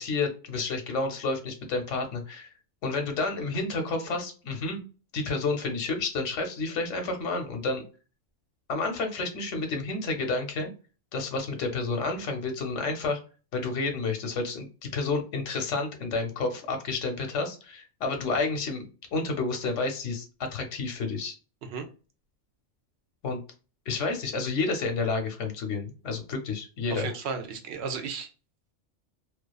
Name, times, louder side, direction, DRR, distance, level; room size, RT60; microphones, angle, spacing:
voice 1, 0.0-2.5 2.8-4.8 5.1-7.8 8.7-10.7 11.1-13.2 13.5-20.3 20.5-21.3 23.2-23.4 23.9-27.1, left 3 dB, 90° left, 5 dB, 1.0 m, -30 dB
voice 2, 26.9-28.3, right 5 dB, 70° right, 7 dB, 0.8 m, -34 dB
2.4 x 2.3 x 2.2 m, 0.35 s
omnidirectional pair, 1.2 m